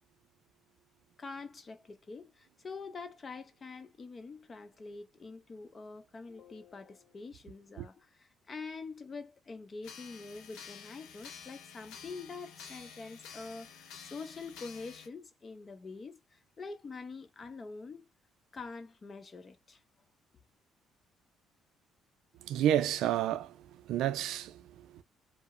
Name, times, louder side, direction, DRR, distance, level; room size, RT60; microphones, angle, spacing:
voice 1, 1.2-18.1 18.5-19.8, left 4 dB, 35° left, 0.6 m, -45 dB
sound 1, 9.8-15.1, left 7 dB, 90° left, 0.6 m, -50 dB
voice 2, 22.4-23.6 23.8-25.0, right 11 dB, 80° right, 0.3 m, -30 dB
2.8 x 2.0 x 2.4 m
cardioid pair, 100°, 0 cm